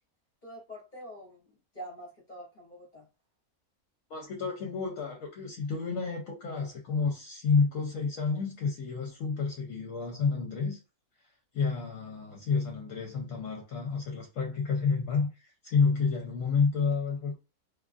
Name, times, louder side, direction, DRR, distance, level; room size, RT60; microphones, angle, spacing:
voice 1, 0.4-3.1, equal, 40° left, 0.8 m, -46 dB
voice 2, 4.1-10.8 11.5-17.4, left 5 dB, 70° left, 0.9 m, -30 dB
2.4 x 2.3 x 2.4 m
omnidirectional pair, 1.6 m